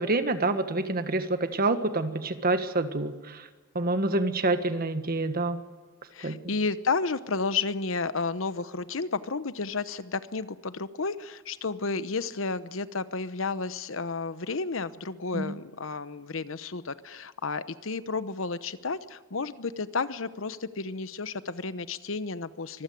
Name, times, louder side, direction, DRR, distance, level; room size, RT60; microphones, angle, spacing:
voice 1, 0.0-3.4 3.7-5.6 6.2-6.4 15.3-15.5, right 2 dB, 50° right, 9 dB, 1.5 m, -27 dB
voice 2, 6.1-22.8, left 4 dB, 75° left, 14 dB, 1.0 m, -32 dB
24.5 x 15.5 x 9.3 m, 1.4 s
head